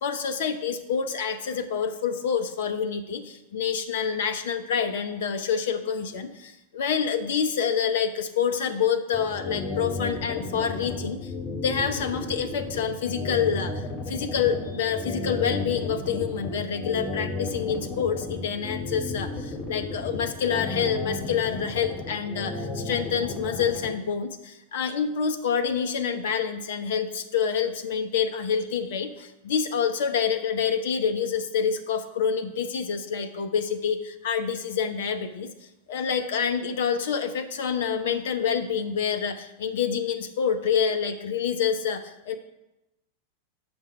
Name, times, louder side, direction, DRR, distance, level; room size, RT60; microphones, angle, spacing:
voice 1, 0.0-35.5 35.9-42.4, left 7 dB, 55° left, 7 dB, 0.6 m, -27 dB
sound 1, 9.1-23.9, left 3 dB, 25° left, 2.4 m, -33 dB
7.3 x 6.0 x 5.2 m, 0.94 s
figure-of-eight pair, 90°, 0 cm